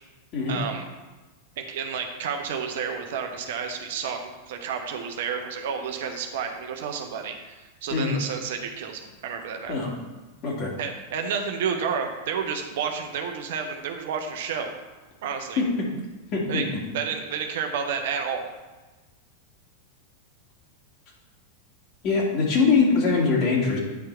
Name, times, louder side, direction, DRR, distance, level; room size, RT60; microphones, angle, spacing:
voice 1, 0.5-0.8 1.6-9.8 10.8-14.7 15.2-15.6 16.5-18.5, right 6 dB, 55° right, 4 dB, 0.9 m, -31 dB
voice 2, 16.3-16.6 22.0-23.8, left 4 dB, 40° left, -3 dB, 2.4 m, -22 dB
9.3 x 4.8 x 4.3 m, 1.2 s
figure-of-eight pair, 90°, 0 cm